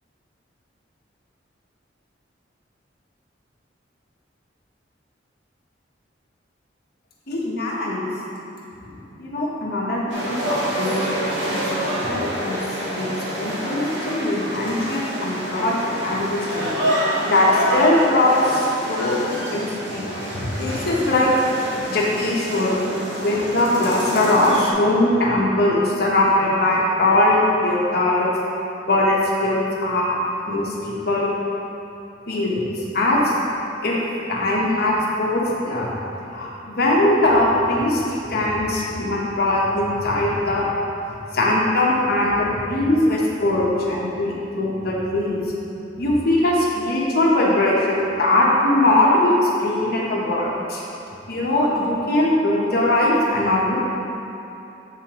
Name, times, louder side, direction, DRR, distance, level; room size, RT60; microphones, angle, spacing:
voice 1, 7.3-8.1 8.8-12.6 13.0-13.1 13.4-16.7 17.2-19.2 19.5-21.3 21.9-22.8 23.2-28.3 28.9-30.2 30.5-31.3 32.3-33.3 33.8-34.0 34.3-36.0 36.3-40.7 41.3-45.4 46.0-50.8 51.3-53.8, left 1 dB, 55° left, -4 dB, 1.1 m, -21 dB
sound 1, 10.1-24.7, equal, 70° right, 1.0 m, -27 dB
7.5 x 5.4 x 3.0 m, 2.9 s
head